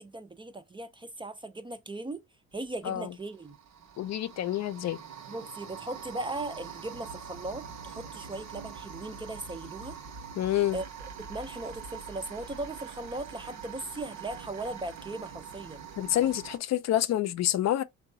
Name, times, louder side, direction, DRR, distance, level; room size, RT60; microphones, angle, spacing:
voice 1, 0.0-2.2 2.5-3.6 5.3-10.0 10.7-10.8 11.2-15.9, right 2 dB, 15° right, 0.4 m, -38 dB
sound 1, 2.5-2.7 3.2-16.6, right 6 dB, 65° right, 0.7 m, -44 dB
voice 2, 4.0-5.0 10.4-10.8 16.0-17.8, left 12 dB, 60° left, 0.5 m, -27 dB
3.8 x 2.3 x 2.6 m
cardioid pair, 90°, 30 cm